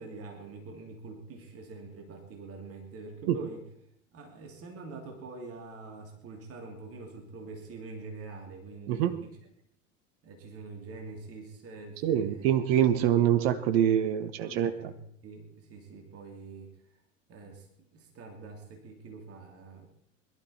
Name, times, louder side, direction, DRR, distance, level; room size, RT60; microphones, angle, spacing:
voice 1, 0.0-3.6 4.1-9.4 10.2-12.5 14.0-16.7 17.3-19.9, right 3 dB, 35° right, 3 dB, 3.1 m, -45 dB
voice 2, 8.9-9.2 12.0-14.7, right 10 dB, 50° right, 11 dB, 1.1 m, -25 dB
21.5 x 12.0 x 4.3 m, 0.71 s
figure-of-eight pair, 75°, 39 cm